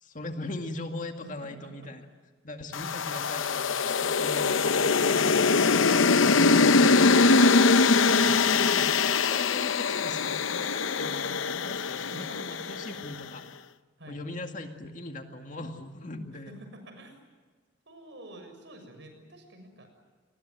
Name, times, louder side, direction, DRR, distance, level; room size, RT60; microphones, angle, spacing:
voice 1, 0.0-2.1 2.4-5.7 8.4-13.6 14.1-16.5, left 2 dB, 40° left, 4 dB, 2.1 m, -40 dB
sound 1, 2.7-13.1, left 4 dB, 85° left, 0.8 m, -23 dB
voice 2, 6.2-7.4 8.2-8.4 12.0-12.8 14.0-14.2 16.3-17.1 17.9-19.9, right 1 dB, 65° right, 6 dB, 6.9 m, -48 dB
29.5 x 21.0 x 7.9 m, 1.5 s
head